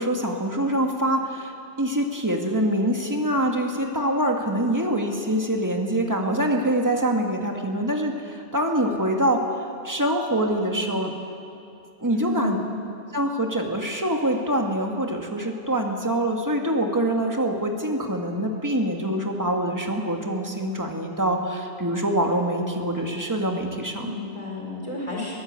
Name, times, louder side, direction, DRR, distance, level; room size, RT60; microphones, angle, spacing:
voice 1, 0.0-9.5 9.8-11.1 12.0-12.6 13.1-24.2, right 1 dB, 15° right, 2 dB, 2.0 m, -25 dB
voice 2, 12.1-12.7 24.0-25.3, left 2 dB, 25° left, -3 dB, 4.9 m, -31 dB
23.5 x 15.0 x 8.3 m, 2.7 s
omnidirectional pair, 1.2 m